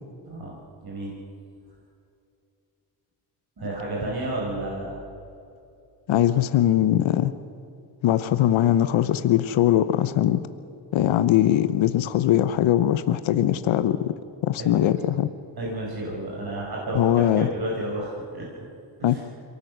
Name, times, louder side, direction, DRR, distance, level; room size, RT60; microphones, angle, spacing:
voice 1, 0.8-1.1 3.6-5.0 14.6-14.9 15.6-18.5 19.0-19.2, right 1 dB, 50° right, -4 dB, 5.4 m, -31 dB
voice 2, 6.1-7.3 8.0-10.5 10.9-14.1 14.4-15.3 16.9-17.5 19.0-19.2, left 12 dB, 70° left, 13 dB, 0.9 m, -21 dB
23.5 x 18.0 x 6.2 m, 2.6 s
supercardioid pair, 60°, 48 cm